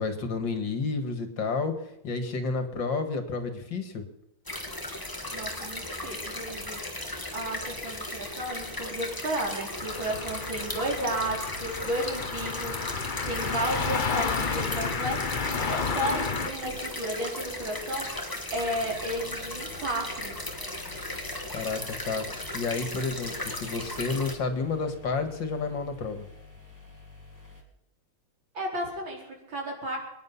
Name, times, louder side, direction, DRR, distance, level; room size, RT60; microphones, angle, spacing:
voice 1, 0.0-1.7 2.0-4.0 21.5-21.8 22.1-22.3 22.5-26.3, left 4 dB, 65° left, 8 dB, 2.5 m, -30 dB
sound 1, 4.5-24.4, left 1 dB, 10° left, 2.3 m, -36 dB
voice 2, 5.3-20.4 28.5-30.0, right 1 dB, 65° right, 0 dB, 5.2 m, -33 dB
sound 2, 9.8-16.5, left 5 dB, 35° left, 0.8 m, -31 dB
sound 3, 18.5-27.6, left 3 dB, 10° right, 3.3 m, -50 dB
24.0 x 10.5 x 5.6 m, 0.90 s
omnidirectional pair, 2.3 m